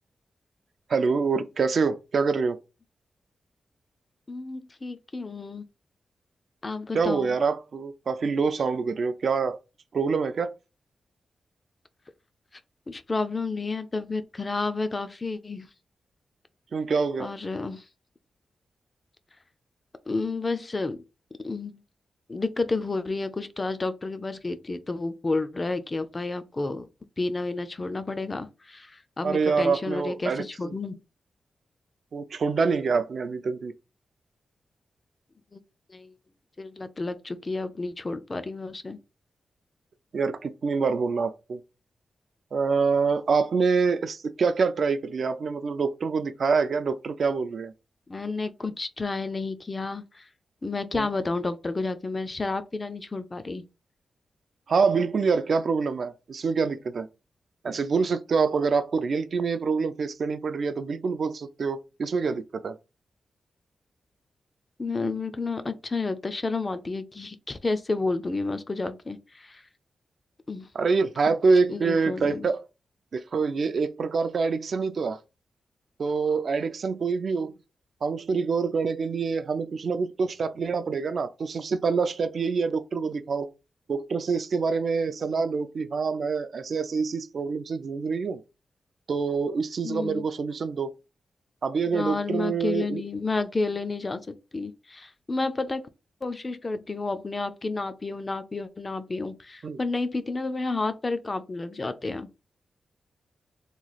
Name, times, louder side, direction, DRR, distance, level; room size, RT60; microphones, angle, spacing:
voice 1, 0.9-2.6 6.9-9.6 9.9-10.5 16.7-17.3 29.2-30.7 32.1-33.7 40.1-41.6 42.5-47.7 50.9-51.1 54.7-57.1 57.6-62.8 70.8-72.6 73.1-75.2 76.0-77.6 78.0-83.5 83.9-88.4 89.1-90.9 91.6-93.0 99.6-99.8, right 5 dB, 55° right, 0.3 m, -26 dB
voice 2, 4.3-5.7 6.6-7.4 12.5-12.6 12.9-15.7 17.2-17.9 20.1-21.0 21.4-21.8 22.3-26.9 27.2-31.0 35.5-35.6 35.9-36.1 36.6-39.0 48.1-50.3 50.6-53.6 64.8-69.6 70.5-70.7 71.7-72.5 89.8-90.2 91.9-95.9 96.2-102.3, left 3 dB, 25° left, 0.3 m, -31 dB
3.0 x 2.3 x 3.9 m
wide cardioid pair, 135°, 0 cm